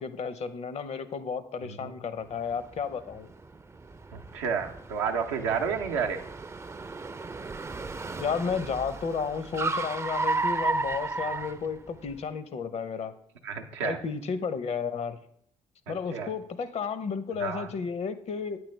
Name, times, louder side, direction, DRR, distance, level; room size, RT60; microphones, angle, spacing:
voice 1, 0.0-3.3 8.2-13.1 13.8-15.2 15.9-18.6, left 6 dB, 50° left, 13 dB, 0.6 m, -32 dB
voice 2, 1.6-1.9 4.1-6.2 11.3-11.4 13.4-14.0 15.9-16.3 17.4-17.7, right 6 dB, 90° right, 4 dB, 0.5 m, -31 dB
Car, 2.3-12.2, right 3 dB, 20° right, 0.4 m, -34 dB
8.5 x 4.6 x 3.1 m, 0.69 s
hypercardioid pair, 45°, 14 cm